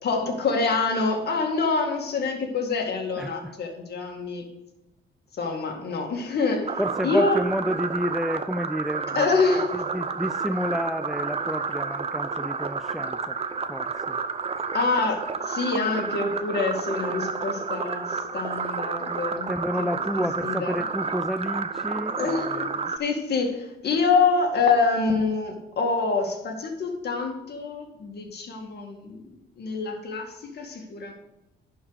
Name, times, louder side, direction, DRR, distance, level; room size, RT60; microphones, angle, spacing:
voice 1, 0.0-4.5 5.3-7.4 9.1-9.6 14.7-19.5 19.8-19.9 20.4-20.8 22.2-22.7 23.0-29.2 29.6-31.1, left 4 dB, 55° left, 2 dB, 2.1 m, -26 dB
voice 2, 3.2-3.6 6.8-9.3 9.7-13.4 13.7-14.2 19.3-22.9, equal, ahead, 10 dB, 0.3 m, -30 dB
sound 1, 6.7-23.0, right 5 dB, 30° right, 0.7 m, -30 dB
11.0 x 4.7 x 6.5 m, 0.95 s
cardioid pair, 90°, 20 cm